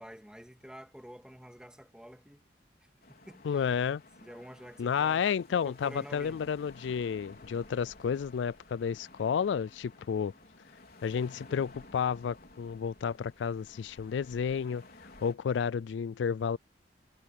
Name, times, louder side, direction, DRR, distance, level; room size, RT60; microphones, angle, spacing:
voice 1, 0.0-2.4 3.1-3.7 4.2-5.3 5.6-6.4, equal, 5° right, 2.0 m, -49 dB
sound 1, 3.0-15.3, left 2 dB, 55° left, 4.7 m, -54 dB
voice 2, 3.4-4.0 4.8-10.3 11.0-14.8 15.2-16.6, left 7 dB, 80° left, 0.3 m, -31 dB
head